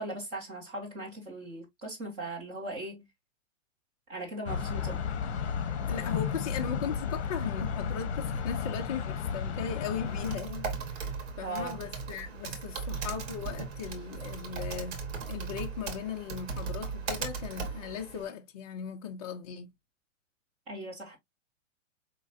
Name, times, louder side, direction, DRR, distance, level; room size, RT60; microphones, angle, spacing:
voice 1, 0.0-3.1 4.1-5.0 11.4-11.8 20.7-21.2, right 2 dB, 15° right, 2.1 m, -39 dB
sound 1, 4.5-10.4, left 6 dB, 55° left, 1.0 m, -33 dB
voice 2, 5.9-10.7 10.9-11.1 11.4-15.0 15.3-19.7, left 7 dB, 30° left, 0.5 m, -38 dB
Typing, 10.1-18.3, right 5 dB, 65° right, 1.8 m, -37 dB
5.2 x 3.2 x 2.6 m
hypercardioid pair, 175°, 38 cm